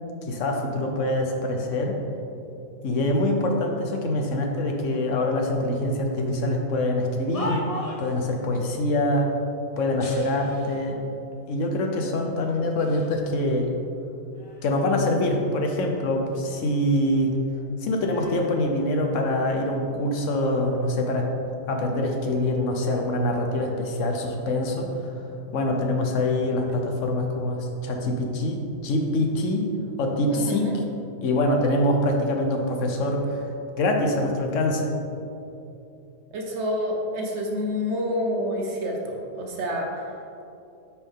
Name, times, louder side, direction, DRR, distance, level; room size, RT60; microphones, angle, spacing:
voice 1, 0.3-2.0 2.8-7.7 8.0-9.3 9.8-11.0 11.5-13.7 14.6-17.4 17.8-21.3 21.7-24.9 25.5-29.6 30.0-30.7 31.2-33.4 33.8-34.9, left 1 dB, 70° left, 2 dB, 1.1 m, -24 dB
sound 1, 6.9-8.2 9.9-10.9 11.6-11.7 12.5-13.2 13.6-15.1 15.4-17.1 17.3-19.5 20.2-20.5, left 1 dB, 35° left, 0.6 m, -40 dB
voice 2, 30.3-30.8 36.3-40.1, left 1 dB, 60° right, 0 dB, 1.1 m, -28 dB
8.6 x 4.5 x 3.6 m, 2.7 s
omnidirectional pair, 1.4 m